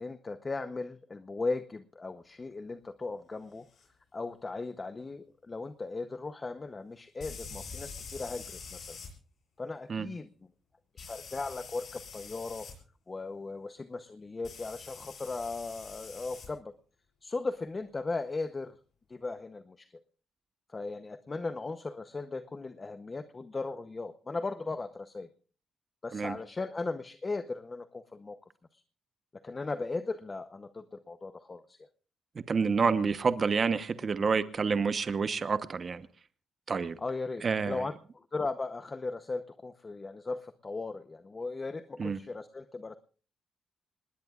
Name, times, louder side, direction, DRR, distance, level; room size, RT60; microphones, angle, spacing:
voice 1, 0.0-3.6 4.1-9.0 9.6-10.3 10.9-12.7 13.1-16.7 17.2-18.8 19.1-19.9 20.7-25.3 26.0-28.4 28.7-28.8 29.4-31.8 37.0-43.0, left 3 dB, 25° left, 11 dB, 0.8 m, -37 dB
sound 1, 3.8-3.9 7.2-9.1 11.0-12.7 14.4-16.5, left 5 dB, 55° left, 6.8 m, -45 dB
voice 2, 32.5-36.0 36.7-37.0 37.4-37.8 42.0-42.2, right 5 dB, 40° right, 12 dB, 0.9 m, -28 dB
27.0 x 20.0 x 2.4 m, 0.39 s
cardioid pair, 120°, 0 cm